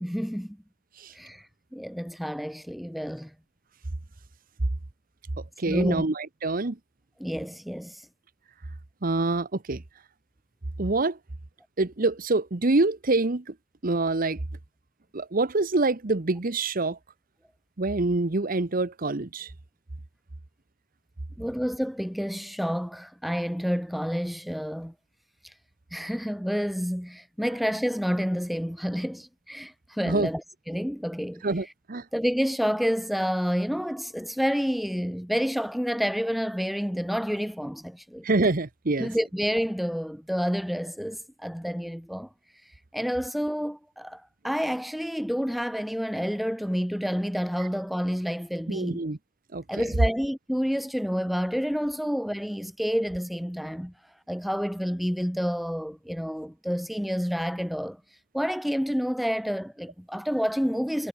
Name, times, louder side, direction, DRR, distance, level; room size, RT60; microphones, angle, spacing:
voice 1, 0.0-0.6 1.1-3.3 5.7-6.0 7.2-8.1 21.4-24.9 25.4-25.5 25.9-30.4 30.7-31.4 32.1-38.2 39.0-42.3 42.6-49.0 49.7-53.9 54.3-58.0 58.3-61.1, equal, ahead, 0.3 m, -29 dB
voice 2, 5.6-6.8 9.0-9.8 10.8-11.2 11.8-13.5 13.8-14.4 15.1-17.0 17.8-19.5 30.0-30.3 31.4-32.0 38.2-39.1 48.7-49.2 49.5-49.9, right 2 dB, 45° right, 1.0 m, -26 dB
head